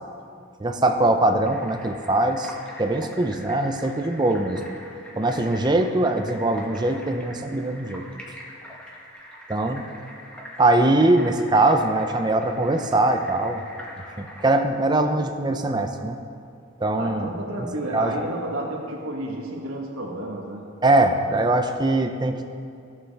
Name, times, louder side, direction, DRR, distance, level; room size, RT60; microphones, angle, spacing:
voice 1, 0.6-4.6 5.2-8.1 9.5-9.9 10.6-13.6 14.2-16.2 16.8-17.3 17.9-18.3 20.8-22.4, right 2 dB, 20° right, 6 dB, 0.5 m, -22 dB
sound 1, 1.4-14.5, equal, 5° left, 1.2 m, -43 dB
voice 2, 17.0-20.7, right 1 dB, 85° right, -1 dB, 1.2 m, -31 dB
15.5 x 6.7 x 3.3 m, 2.4 s
head